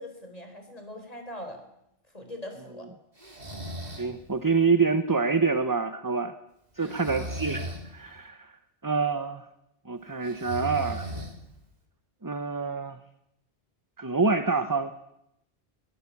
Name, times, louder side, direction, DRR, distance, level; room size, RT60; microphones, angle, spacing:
voice 1, 0.0-1.6 2.1-2.9 6.8-7.3, left 1 dB, 35° left, 5 dB, 4.6 m, -42 dB
Breathing, 3.2-4.1 6.8-7.8 10.2-11.6, right 1 dB, 35° right, 4.1 m, -37 dB
voice 2, 4.0-6.3 6.8-8.5 8.8-9.5 9.9-11.1 12.2-13.0 14.0-14.9, right 4 dB, 20° right, 10 dB, 0.9 m, -26 dB
22.5 x 18.0 x 8.6 m, 0.81 s
omnidirectional pair, 1.2 m